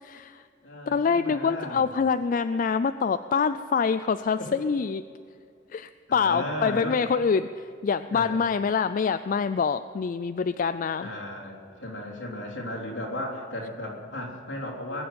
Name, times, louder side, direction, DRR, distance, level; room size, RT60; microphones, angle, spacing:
voice 1, 0.0-0.4 0.9-5.0 5.7-11.1, left 5 dB, 45° left, 11 dB, 0.3 m, -25 dB
voice 2, 0.6-2.0 4.4-4.5 6.1-7.0 8.1-8.4 11.0-15.0, left 1 dB, 70° left, -1 dB, 3.4 m, -35 dB
21.0 x 7.0 x 9.2 m, 2.4 s
head